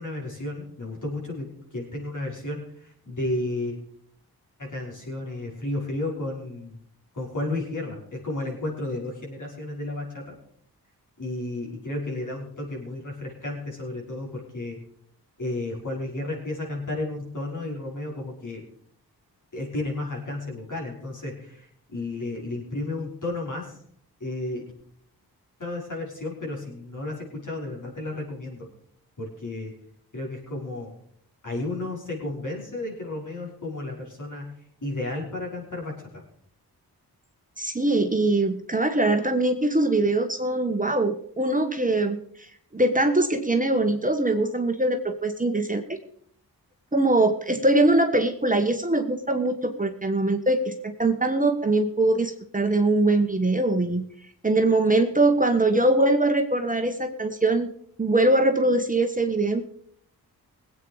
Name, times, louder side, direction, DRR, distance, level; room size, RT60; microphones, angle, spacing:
voice 1, 0.0-3.8 4.6-6.8 7.1-10.3 11.2-14.8 15.4-18.6 19.5-23.8 24.2-24.7 25.6-28.7 29.2-29.7 30.1-30.9 31.4-36.2, left 2 dB, 50° left, -2 dB, 5.7 m, -33 dB
voice 2, 37.6-42.5 42.7-46.0 46.9-54.0 54.4-57.7 58.0-59.6, right 2 dB, 20° right, 6 dB, 1.4 m, -22 dB
19.5 x 8.8 x 4.9 m, 0.65 s
cardioid pair, 50°, 38 cm